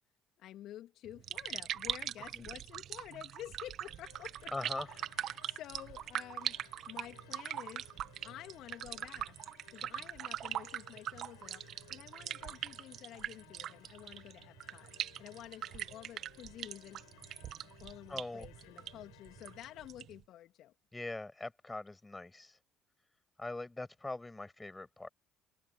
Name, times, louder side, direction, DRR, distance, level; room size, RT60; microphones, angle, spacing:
voice 1, 0.4-5.1 5.4-6.6 6.9-7.9 8.2-9.4 9.7-11.6 11.9-14.9 15.2-17.0 17.8-20.7, left 13 dB, 60° left, 2.7 m, -50 dB
sound 1, 1.0-20.2, right 11 dB, 55° right, 1.7 m, -42 dB
sound 2, 3.9-19.9, left 25 dB, 75° left, 5.6 m, -62 dB
voice 2, 4.5-4.9 5.2-5.4 18.1-18.5 20.9-22.6 23.4-25.1, left 2 dB, 15° left, 7.5 m, -42 dB
hypercardioid pair, 55°, 0 cm